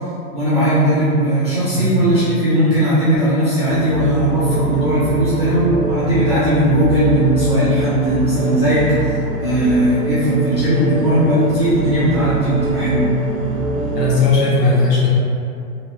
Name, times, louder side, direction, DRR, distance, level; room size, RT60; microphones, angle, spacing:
voice 1, 0.3-8.9 9.4-13.1, right 1 dB, 20° right, -16 dB, 0.4 m, -17 dB
voice 2, 1.8-2.1 13.0-13.1 13.9-15.1, left 3 dB, 85° left, -6 dB, 1.2 m, -16 dB
sound 1, 3.7-14.3, right 2 dB, 65° right, 0.6 m, -24 dB
2.9 x 2.6 x 3.2 m, 2.5 s
hypercardioid pair, 175°, 48 cm